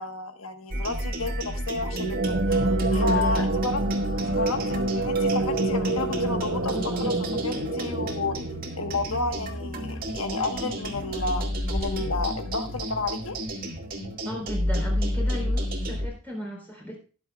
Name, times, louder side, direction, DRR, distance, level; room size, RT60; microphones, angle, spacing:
voice 1, 0.0-3.8 4.3-8.3 8.7-13.4, left 3 dB, 70° left, 7 dB, 1.3 m, -31 dB
sound 1, 0.7-16.1, equal, 40° right, 2.0 m, -31 dB
sound 2, 1.7-9.2, right 2 dB, 60° right, 1.5 m, -27 dB
voice 2, 2.9-3.4 14.2-17.0, equal, 10° left, -2 dB, 4.0 m, -35 dB
sound 3, 4.1-13.2, left 1 dB, 45° left, 2.0 m, -44 dB
20.0 x 7.3 x 2.4 m, 0.37 s
head